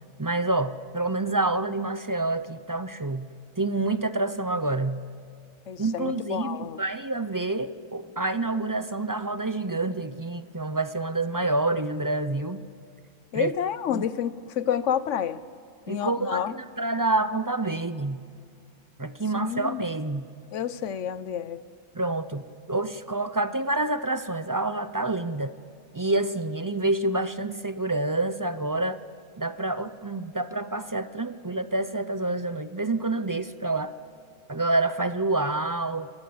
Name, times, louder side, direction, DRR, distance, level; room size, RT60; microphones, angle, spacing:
voice 1, 0.2-3.3 3.6-5.0 5.8-12.6 13.3-13.5 13.9-14.1 15.9-18.2 19.0-20.3 21.9-25.5 25.9-29.0 29.4-33.9 34.5-36.1, right 2 dB, 25° right, 12 dB, 0.4 m, -28 dB
voice 2, 5.7-6.8 13.3-15.4 15.9-16.5 19.3-19.8 20.5-21.6, left 9 dB, 70° left, 15 dB, 1.1 m, -29 dB
27.5 x 21.0 x 7.9 m, 2.2 s
omnidirectional pair, 1.3 m